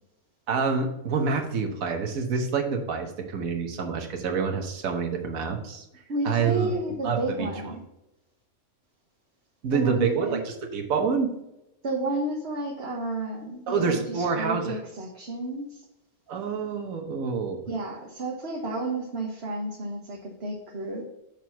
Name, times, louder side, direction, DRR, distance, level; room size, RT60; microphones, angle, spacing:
voice 1, 0.5-5.8 6.2-6.7 7.0-7.5 9.6-11.3 13.7-14.8 16.3-17.7, right 5 dB, 75° right, 3 dB, 1.5 m, -27 dB
voice 2, 6.1-7.8 9.7-10.4 11.8-15.8 17.7-21.0, right 2 dB, 50° right, -1 dB, 1.4 m, -31 dB
6.8 x 4.5 x 5.6 m, 0.88 s
omnidirectional pair, 1.5 m